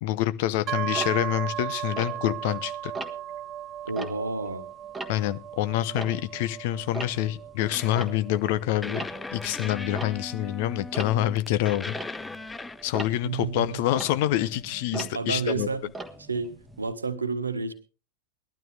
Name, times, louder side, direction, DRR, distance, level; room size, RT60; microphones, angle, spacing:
voice 1, 0.0-2.9 5.1-9.1 9.3-11.9 12.8-15.7, left 13 dB, 50° left, 0.9 m, -27 dB
sound 1, 0.7-14.4, right 11 dB, 30° right, 0.6 m, -38 dB
Tick-tock, 0.9-2.6 2.9-3.4 3.8-6.5 6.8-16.9, right 2 dB, 10° right, 1.4 m, -40 dB
voice 2, 3.8-4.7 13.2-13.9 14.9-15.8 16.3-17.7, right 4 dB, 75° right, 1.4 m, -30 dB
sound 2, 7.7-8.1 8.8-13.0, left 3 dB, 10° left, 0.6 m, -38 dB
20.0 x 12.5 x 3.3 m
figure-of-eight pair, 90°, 0 cm